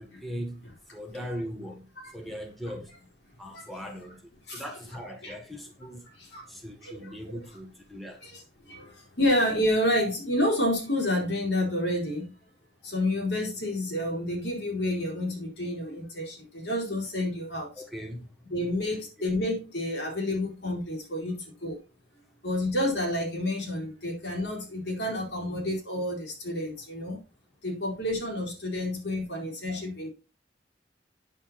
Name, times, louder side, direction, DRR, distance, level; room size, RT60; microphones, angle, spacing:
voice 1, 0.0-1.9 2.1-2.9 3.4-4.2 4.5-6.0 6.5-8.2 17.8-18.3, equal, ahead, 1.5 m, -39 dB
voice 2, 6.2-6.5 6.8-7.4 8.2-12.3 12.8-17.7 18.5-21.8 22.4-27.2 27.6-30.1, left 1 dB, 70° left, 4.0 m, -29 dB
8.8 x 7.2 x 4.3 m
head